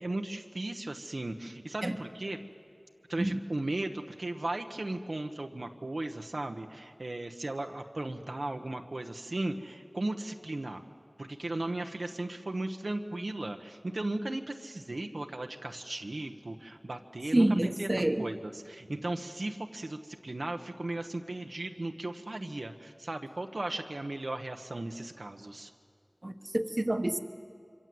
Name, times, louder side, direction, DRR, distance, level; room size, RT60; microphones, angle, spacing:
voice 1, 0.0-2.4 3.1-10.8 11.2-17.9 18.2-25.7, right 2 dB, 80° right, 4 dB, 1.1 m, -36 dB
voice 2, 17.3-18.2 26.2-27.2, right 1 dB, 45° right, 7 dB, 1.2 m, -27 dB
26.5 x 25.0 x 7.9 m, 2.3 s
wide cardioid pair, 40°, 0 cm